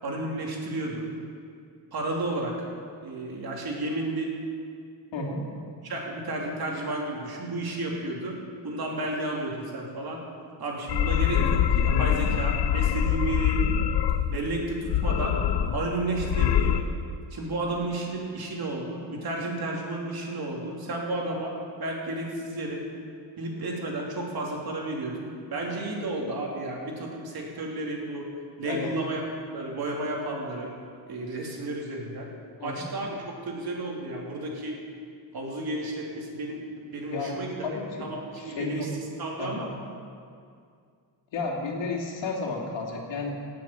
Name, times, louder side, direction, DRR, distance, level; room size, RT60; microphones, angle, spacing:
voice 1, 0.0-1.0 1.9-2.5 3.0-4.3 5.8-8.4 8.6-10.2 10.6-13.6 14.3-15.4 15.7-16.8 17.3-22.8 23.4-25.2 25.5-28.3 28.6-29.2 29.5-30.7 31.1-32.3 32.6-33.2 33.4-34.8 35.3-36.6 36.9-37.7 38.0-38.9 39.2-39.7, right 2 dB, 55° right, -2 dB, 3.4 m, -32 dB
voice 2, 5.1-5.5 28.6-28.9 32.6-32.9 37.1-37.3 37.6-38.1 38.4-38.9 39.4-39.6 41.3-43.3, left 3 dB, 80° left, -1 dB, 2.8 m, -32 dB
sound 1, 10.9-14.4 14.9-15.9 16.2-16.8, left 10 dB, 60° left, 0.8 m, -24 dB
17.5 x 7.7 x 8.9 m, 2.3 s
cardioid pair, 120°, 44 cm